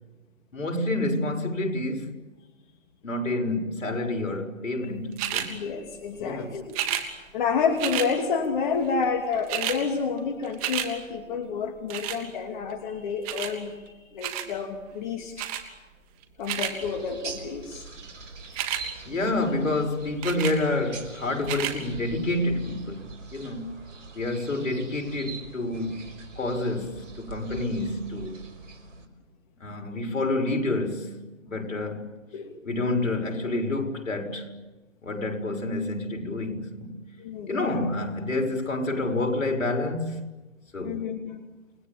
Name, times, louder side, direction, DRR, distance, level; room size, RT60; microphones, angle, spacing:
voice 1, 0.5-2.1 3.0-5.6 6.2-6.5 19.0-23.8 24.1-26.0 26.4-28.4 29.6-32.1 32.6-34.5 35.0-36.9 37.5-40.2 40.7-41.1, left 2 dB, 75° left, 6.5 m, -28 dB
sound 1, 5.2-5.5 6.7-7.1 7.8-8.1 9.0-9.1 9.3-9.8 10.2-10.9 11.9-12.2 13.3-13.5 14.2-14.5 15.4-15.6 16.2-16.7 18.4-18.8 20.2-20.6 21.4-21.8 22.4-22.5, right 11 dB, 30° right, 3.1 m, -30 dB
voice 2, 5.5-6.8 7.3-15.5 16.4-17.8 32.3-32.6 37.2-37.9 40.8-41.4, left 5 dB, 35° left, 2.8 m, -29 dB
sound 2, 16.8-29.0, right 4 dB, 65° right, 5.6 m, -43 dB
29.5 x 21.0 x 8.7 m
hypercardioid pair, 145°, 40 cm